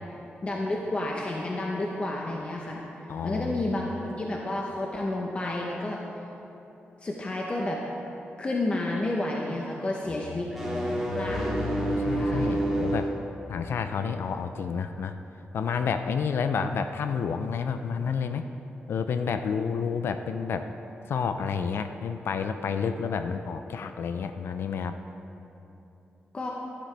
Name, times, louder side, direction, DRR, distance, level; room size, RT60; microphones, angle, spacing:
voice 1, 0.4-2.8 3.2-6.0 7.0-7.8 8.4-10.5 11.1-11.6 12.1-12.6 26.3-26.5, left 2 dB, 30° left, -1 dB, 0.9 m, -30 dB
voice 2, 3.1-3.7 10.3-13.1 13.5-15.2 15.5-18.5 18.9-20.7 21.1-25.0, left 6 dB, 75° left, 8 dB, 0.4 m, -30 dB
sound 1, 10.4-13.2, right 1 dB, 5° right, 2.0 m, -28 dB
12.0 x 11.5 x 3.4 m, 3.0 s
wide cardioid pair, 120°, 4 cm